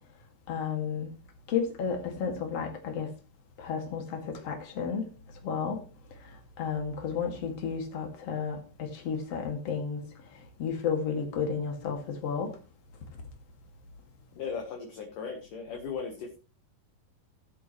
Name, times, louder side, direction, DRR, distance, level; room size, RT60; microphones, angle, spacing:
voice 1, 0.5-1.1 1.5-3.1 3.6-5.1 5.4-5.8 6.6-10.0 10.6-12.5, left 6 dB, 40° left, 2.7 m, -32 dB
voice 2, 14.4-16.4, left 5 dB, 60° left, 2.3 m, -37 dB
16.5 x 8.2 x 3.2 m
omnidirectional pair, 5.4 m